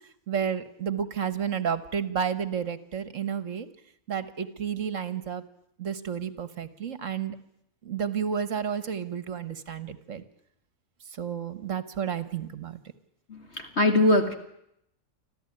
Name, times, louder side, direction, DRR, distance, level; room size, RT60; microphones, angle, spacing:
voice 1, 0.3-3.7 4.1-5.4 5.8-7.4 7.8-10.2 11.2-12.8, right 7 dB, 60° right, 13 dB, 1.7 m, -31 dB
voice 2, 13.3-14.3, left 1 dB, 50° left, 5 dB, 2.2 m, -22 dB
25.5 x 14.5 x 9.9 m, 0.75 s
omnidirectional pair, 1.5 m